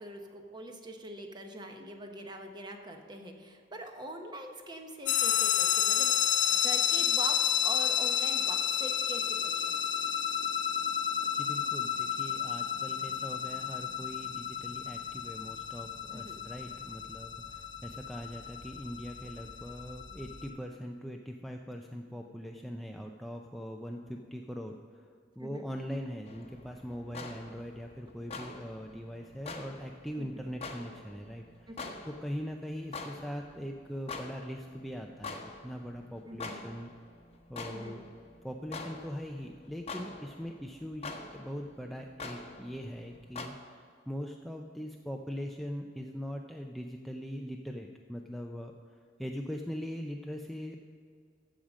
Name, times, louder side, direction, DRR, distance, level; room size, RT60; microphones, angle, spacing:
voice 1, 0.0-6.1 6.5-9.8 16.1-16.4 25.4-25.7 30.2-30.5 31.7-31.9 36.3-36.7 37.7-38.0, right 1 dB, 25° right, 4 dB, 1.0 m, -43 dB
sound 1, 5.1-20.5, left 9 dB, 90° left, 1.2 m, -31 dB
voice 2, 11.3-24.8 25.4-31.7 32.0-36.9 37.5-38.0 38.4-48.7 49.2-50.8, equal, ahead, 2 dB, 0.4 m, -41 dB
sound 2, 26.3-43.5, left 3 dB, 35° left, 0.9 m, -46 dB
14.5 x 5.0 x 6.3 m, 2.2 s
head